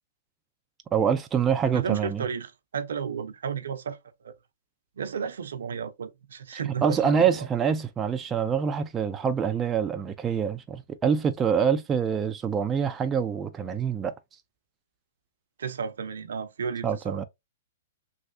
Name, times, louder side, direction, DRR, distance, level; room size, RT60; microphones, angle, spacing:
voice 1, 0.9-2.2 6.5-14.1 16.8-17.2, right 7 dB, 15° right, 0.3 m, -25 dB
voice 2, 1.7-4.0 4.2-4.3 5.0-7.3 15.6-17.2, right 6 dB, 80° right, 0.6 m, -33 dB
3.2 x 2.7 x 2.6 m
hypercardioid pair, 145°, 0 cm